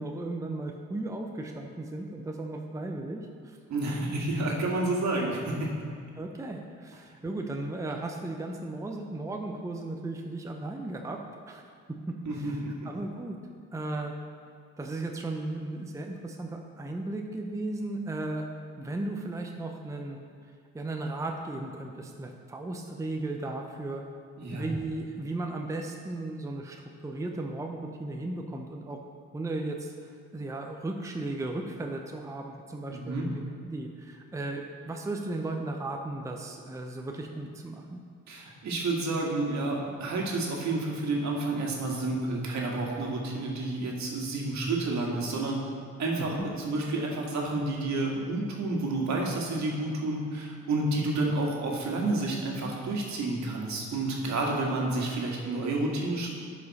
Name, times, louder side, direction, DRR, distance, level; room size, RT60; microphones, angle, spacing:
voice 1, 0.0-3.6 6.2-11.2 11.5-11.6 11.9-13.4 13.7-14.1 14.8-18.5 18.8-20.2 20.7-24.0 24.5-29.0 29.3-33.2 33.7-38.0 46.2-46.5, right 2 dB, 10° right, 2 dB, 0.7 m, -36 dB
voice 2, 3.7-5.7 12.2-12.9 24.4-24.7 32.9-33.3 38.3-45.6 46.0-56.3, right 2 dB, 65° right, -1 dB, 1.8 m, -30 dB
11.0 x 5.1 x 4.2 m, 2.2 s
cardioid pair, 90°, 30 cm